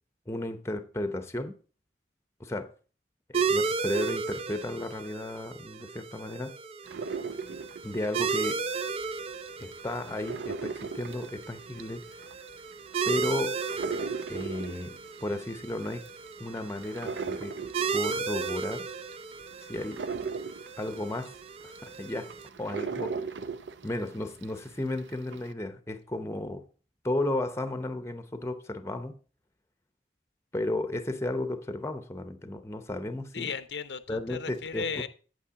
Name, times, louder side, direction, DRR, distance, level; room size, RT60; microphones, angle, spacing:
voice 1, 0.3-1.6 2.4-2.7 3.3-6.6 7.8-8.6 9.6-12.0 13.1-13.6 14.3-16.0 16.4-17.6 17.9-18.8 19.6-20.0 20.8-21.3 21.6-22.3 22.6-23.3 23.8-26.7 27.0-29.2 30.5-33.5 34.1-34.8, left 1 dB, 15° left, 0.7 m, -34 dB
sound 1, 3.3-22.5, right 5 dB, 35° right, 0.4 m, -35 dB
sound 2, 6.9-9.1 9.5-24.6 25.0-25.5, right 5 dB, 85° right, 0.6 m, -38 dB
voice 2, 33.3-35.1, left 5 dB, 75° left, 0.6 m, -35 dB
8.6 x 7.8 x 3.6 m
head